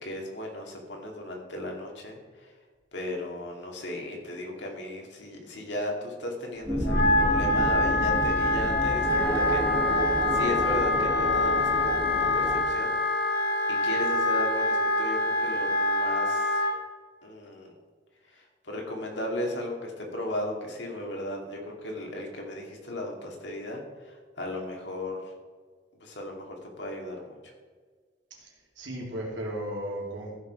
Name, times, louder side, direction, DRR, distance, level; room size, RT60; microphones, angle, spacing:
voice 1, 0.0-2.5 2.9-12.9 13.7-16.6 17.2-17.7 18.3-25.3 26.0-27.4, left 1 dB, 70° left, 0 dB, 2.4 m, -36 dB
sound 1, 6.6-12.6, equal, 15° right, 1.3 m, -30 dB
Wind instrument woodwind instrument, 6.8-16.7, left 2 dB, 55° left, 1.7 m, -25 dB
voice 2, 28.8-30.4, right 1 dB, 90° right, -2 dB, 3.0 m, -35 dB
14.5 x 6.3 x 4.6 m, 1.6 s
head